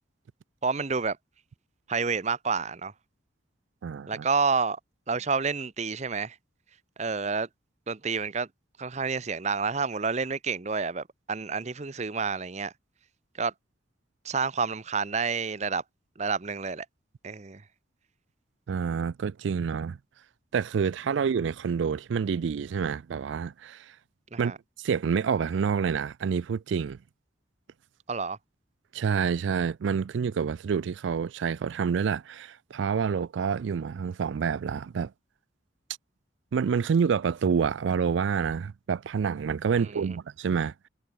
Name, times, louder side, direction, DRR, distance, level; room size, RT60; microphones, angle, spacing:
voice 1, 0.6-1.2 1.9-2.9 4.1-4.8 5.1-6.4 7.0-7.5 7.9-8.5 8.8-12.7 13.4-13.5 14.2-15.8 16.2-16.9 17.2-17.6 24.3-24.6 28.1-28.4 39.7-40.2, right 5 dB, 35° right, 0.7 m, -29 dB
voice 2, 3.8-4.3 18.7-20.0 20.5-23.9 24.4-24.5 24.8-27.0 28.9-35.1 36.5-40.7, right 6 dB, 70° right, 0.4 m, -28 dB
head